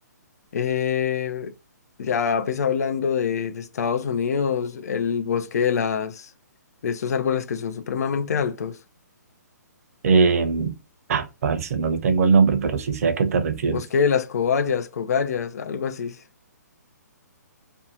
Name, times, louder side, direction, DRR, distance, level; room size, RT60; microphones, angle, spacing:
voice 1, 0.5-1.5 2.0-6.3 6.8-8.8 13.7-16.2, left 7 dB, 65° left, 0.4 m, -25 dB
voice 2, 10.0-10.7 11.1-13.8, right 5 dB, 55° right, 0.6 m, -20 dB
2.6 x 2.2 x 2.7 m
hypercardioid pair, 135°, 9 cm